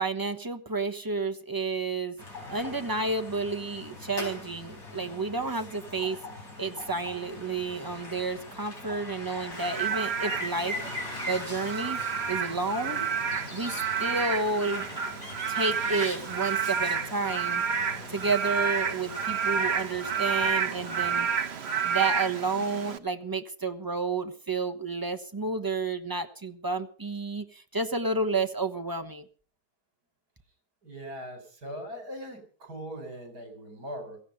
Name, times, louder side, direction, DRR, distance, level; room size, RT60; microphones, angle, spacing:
voice 1, 0.0-2.2 2.5-6.2 6.6-10.8 11.3-12.0 12.3-13.1 13.5-14.8 15.5-17.6 18.1-21.4 21.8-29.3, right 3 dB, 15° right, 7 dB, 1.1 m, -31 dB
sound 1, 2.2-21.2, left 2 dB, 65° left, 4.8 m, -41 dB
Frog / Rain, 9.5-23.0, right 6 dB, 45° right, 1.2 m, -30 dB
voice 2, 30.8-34.2, equal, 70° right, 6 dB, 4.8 m, -40 dB
16.5 x 15.5 x 5.2 m, 0.41 s
omnidirectional pair, 1.7 m